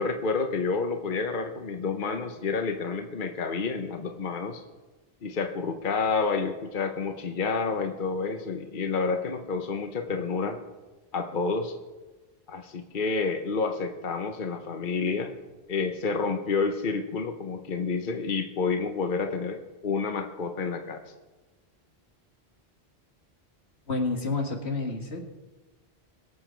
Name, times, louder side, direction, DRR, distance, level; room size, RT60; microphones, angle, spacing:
voice 1, 0.0-4.6 5.2-10.6 11.1-11.7 12.5-15.3 15.7-21.0, left 4 dB, 55° left, 6 dB, 1.1 m, -29 dB
voice 2, 23.9-25.2, left 3 dB, 85° left, 2 dB, 2.1 m, -29 dB
22.5 x 8.1 x 4.5 m, 1.2 s
omnidirectional pair, 1.1 m